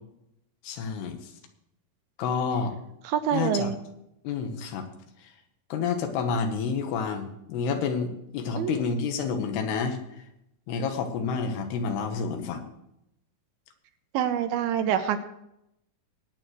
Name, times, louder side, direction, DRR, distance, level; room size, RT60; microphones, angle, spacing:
voice 1, 0.6-1.3 2.2-2.8 3.3-3.7 4.2-4.8 5.7-10.0 10.7-12.7, left 5 dB, 90° left, 6 dB, 3.3 m, -29 dB
voice 2, 3.1-3.8 8.6-8.7 14.1-15.2, right 9 dB, 80° right, 8 dB, 2.5 m, -26 dB
21.0 x 9.0 x 3.2 m, 0.82 s
omnidirectional pair, 4.6 m